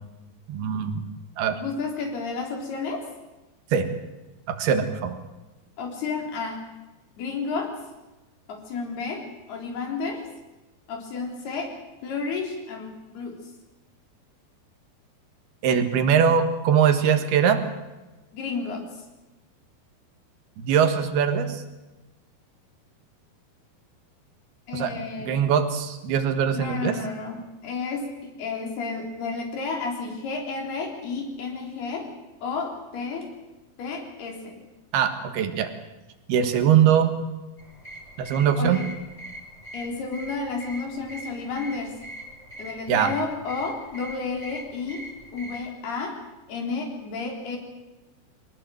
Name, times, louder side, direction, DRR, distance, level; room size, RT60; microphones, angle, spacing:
voice 1, 0.5-1.0 1.4-1.6 3.7-3.9 4.5-5.2 15.6-17.6 20.6-21.6 24.7-26.9 34.9-35.7 36.3-37.1 38.2-38.8 42.9-43.1, right 8 dB, 80° right, 8 dB, 3.6 m, -22 dB
voice 2, 1.6-3.0 5.8-6.6 7.2-7.7 8.5-10.2 10.9-11.7 12.0-13.4 18.3-18.9 24.7-25.5 26.5-32.1 32.4-33.3 33.8-34.6 38.6-38.9 39.7-41.9 42.6-45.0 45.3-46.2 46.5-47.6, left 4 dB, 80° left, 2 dB, 5.8 m, -31 dB
sound 1, 37.6-45.7, equal, 10° left, 3.3 m, -42 dB
23.0 x 19.0 x 7.8 m, 1.1 s
omnidirectional pair, 4.5 m